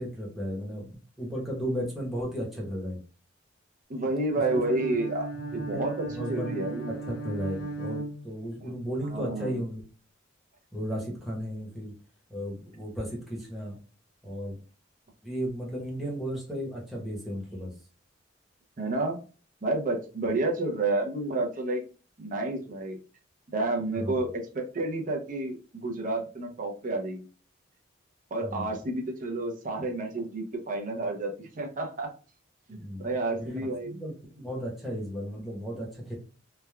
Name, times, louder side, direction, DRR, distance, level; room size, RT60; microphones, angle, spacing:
voice 1, 0.0-3.0 5.3-9.8 10.7-11.9 12.3-13.8 14.2-14.6 15.2-17.7 23.9-24.1 28.4-28.7 32.7-36.2, equal, ahead, -4 dB, 0.9 m, -35 dB
voice 2, 3.9-5.9 6.3-6.8 8.6-8.7 9.1-9.6 18.8-19.2 19.6-21.8 22.2-23.0 23.5-27.3 28.3-32.1 32.7-34.0, right 2 dB, 45° right, 2 dB, 0.6 m, -30 dB
Bowed string instrument, 4.2-8.8, right 2 dB, 50° left, 0.5 m, -37 dB
3.2 x 2.2 x 2.2 m, 0.37 s
head